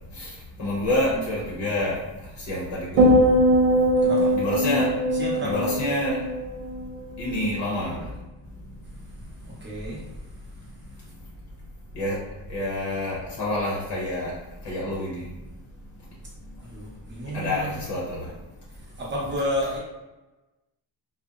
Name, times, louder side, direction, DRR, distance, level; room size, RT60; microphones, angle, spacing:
voice 1, 0.6-2.0 2.4-3.2 4.3-4.9 5.4-6.2 7.2-8.0 11.9-12.2 12.5-14.3 14.6-15.3 17.3-18.3, left 1 dB, 70° left, -5 dB, 0.7 m, -27 dB
sound 1, 3.0-7.4 7.7-8.1, equal, 85° right, 0.7 m, -21 dB
voice 2, 5.1-5.6 9.6-10.0 16.7-17.8 19.0-19.8, equal, 25° right, -4 dB, 0.6 m, -30 dB
2.7 x 2.0 x 2.3 m, 1.1 s
wide cardioid pair, 170°, 43 cm